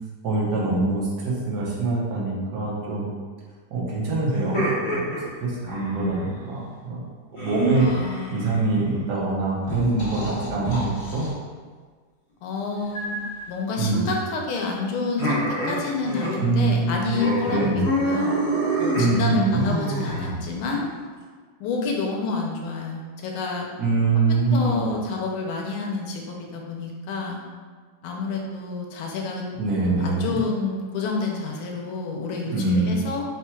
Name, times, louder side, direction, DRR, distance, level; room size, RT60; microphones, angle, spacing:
voice 1, 0.2-3.1 3.7-5.1 5.4-7.0 7.3-7.9 8.3-11.2 13.8-14.0 16.4-17.2 17.4-17.8 19.0-19.6 23.8-24.8 29.6-30.2 32.5-33.1, right 3 dB, 60° right, -5 dB, 1.3 m, -24 dB
sound 1, 4.3-6.3 7.4-8.8 9.7-11.3 12.9-13.4 15.2-16.4 16.7-16.8 17.1-20.7, right 1 dB, 45° left, 1.0 m, -28 dB
voice 2, 7.8-8.4 12.4-13.2 13.5-18.4 18.8-20.9 21.6-23.7 24.2-24.3 24.5-27.4 28.0-29.4 29.9-33.2, left 4 dB, 90° left, 0 dB, 1.5 m, -29 dB
4.4 x 2.3 x 4.3 m, 1.5 s
omnidirectional pair, 2.3 m